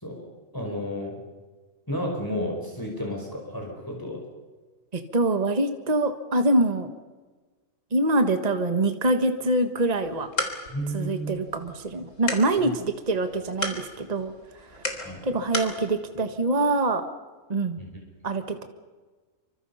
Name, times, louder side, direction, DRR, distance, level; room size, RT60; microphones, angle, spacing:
voice 1, 0.0-1.2 1.9-4.2 10.7-11.4 12.6-12.7 15.0-15.2 17.8-18.0, equal, 15° left, -1 dB, 5.1 m, -32 dB
voice 2, 4.9-6.9 7.9-10.3 10.9-17.0 17.5-17.8 18.2-18.6, right 2 dB, 30° right, 7 dB, 1.6 m, -25 dB
sound 1, 9.9-15.8, left 2 dB, 60° left, 4.0 m, -35 dB
29.0 x 26.0 x 5.7 m, 1.4 s
omnidirectional pair, 1.4 m